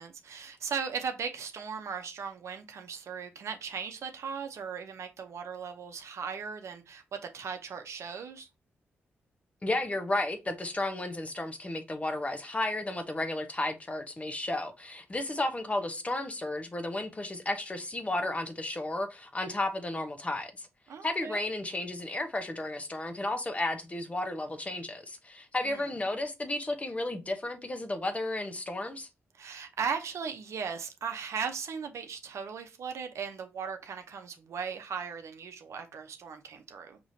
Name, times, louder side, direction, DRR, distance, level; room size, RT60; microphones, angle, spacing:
voice 1, 0.0-8.5 20.9-21.4 25.6-25.8 29.3-37.0, right 6 dB, 70° right, 0.7 m, -37 dB
voice 2, 9.6-20.7 21.0-29.1, left 2 dB, 25° left, 0.9 m, -33 dB
4.8 x 3.0 x 2.7 m
supercardioid pair, 55°, 5 cm